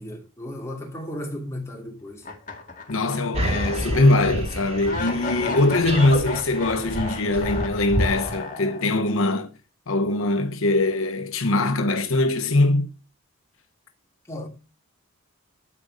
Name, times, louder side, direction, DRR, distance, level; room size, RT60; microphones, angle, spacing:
voice 1, 0.0-2.2 14.3-14.5, left 1 dB, 15° left, 2.7 m, -34 dB
sound 1, 2.2-3.5 3.9-4.0 4.8-9.1, left 4 dB, 35° left, 2.1 m, -34 dB
voice 2, 2.9-9.5 9.9-12.9, left 2 dB, 70° left, 1.0 m, -22 dB
sound 2, 3.3-8.4, equal, 30° right, 3.4 m, -29 dB
12.5 x 5.0 x 6.5 m
head